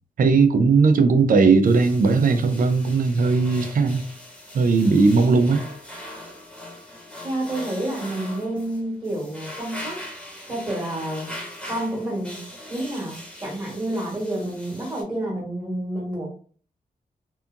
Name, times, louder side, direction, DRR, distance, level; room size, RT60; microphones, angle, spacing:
voice 1, 0.2-4.1 4.5-5.6, right 4 dB, 65° right, 0.4 m, -18 dB
sound 1, 1.6-15.0, left 1 dB, 5° left, 0.9 m, -40 dB
voice 2, 7.2-10.0 10.5-11.3 11.7-12.4 12.7-16.3, right 1 dB, 25° right, 1.1 m, -29 dB
2.7 x 2.5 x 2.3 m
wide cardioid pair, 105°, 15 cm